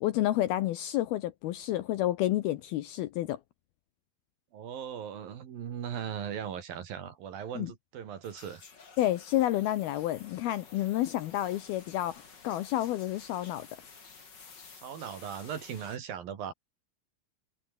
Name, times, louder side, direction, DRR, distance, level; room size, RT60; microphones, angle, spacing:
voice 1, 0.0-3.4 7.6-7.7 9.0-13.7, left 14 dB, 75° left, 2.4 m, -30 dB
voice 2, 4.5-8.6 14.7-16.5, right 8 dB, 55° right, 3.9 m, -38 dB
sound 1, 8.2-16.0, left 5 dB, 30° left, 2.5 m, -52 dB
omnidirectional pair, 5.2 m